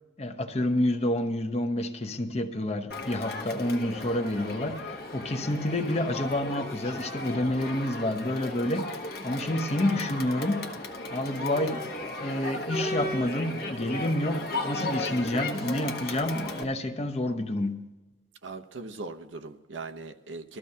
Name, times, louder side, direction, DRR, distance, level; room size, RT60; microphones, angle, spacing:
voice 1, 0.2-10.7 11.1-11.9 12.2-17.8, left 1 dB, 35° left, 0.8 m, -29 dB
Crowd, 2.9-16.6, left 2 dB, 50° left, 1.1 m, -35 dB
voice 2, 18.4-20.6, right 3 dB, 80° right, 0.8 m, -40 dB
20.5 x 13.5 x 2.8 m
head